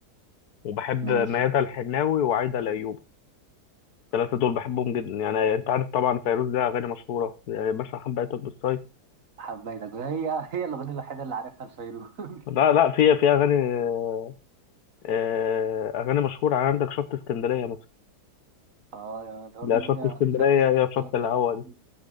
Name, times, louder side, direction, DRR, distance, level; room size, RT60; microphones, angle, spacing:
voice 1, 0.6-3.0 4.1-8.8 12.5-14.3 15.0-17.8 19.6-21.6, left 9 dB, 70° left, 1.3 m, -24 dB
voice 2, 9.4-12.4 18.9-20.2 21.0-21.4 21.6-21.7, right 6 dB, 55° right, 1.6 m, -34 dB
14.0 x 6.3 x 3.8 m
omnidirectional pair, 1.7 m